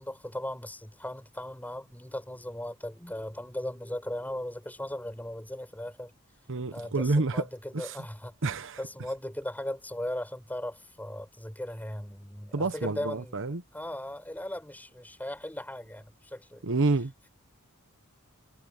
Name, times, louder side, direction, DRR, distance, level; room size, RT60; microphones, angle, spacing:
voice 1, 0.0-6.1 6.7-8.4 8.8-13.4 13.7-16.6, left 1 dB, 10° left, 6.1 m, -38 dB
voice 2, 6.5-7.5 7.7-8.0 8.4-8.8 12.5-13.6 16.6-17.1, right 3 dB, 60° right, 1.0 m, -28 dB
head